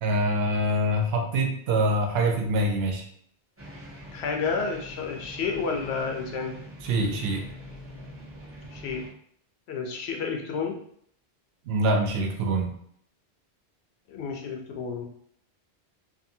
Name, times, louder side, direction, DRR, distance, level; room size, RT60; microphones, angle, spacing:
voice 1, 0.0-3.1 6.8-7.5 11.7-12.7, right 1 dB, 70° right, 2 dB, 0.8 m, -25 dB
sound 1, 3.6-9.1, equal, 15° right, 0.6 m, -44 dB
voice 2, 4.1-6.5 8.7-9.0 9.7-10.8 14.1-15.1, left 5 dB, 80° left, 2 dB, 0.8 m, -30 dB
2.6 x 2.6 x 2.6 m, 0.64 s
omnidirectional pair, 1.1 m